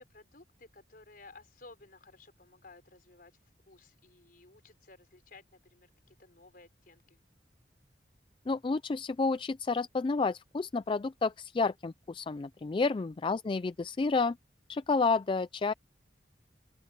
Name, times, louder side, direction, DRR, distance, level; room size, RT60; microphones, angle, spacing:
voice 1, 0.0-3.3 3.7-7.2 12.8-13.0, left 3 dB, 55° left, 4.8 m, -56 dB
voice 2, 8.5-14.4 14.7-15.7, left 4 dB, 30° left, 0.3 m, -30 dB
open air
head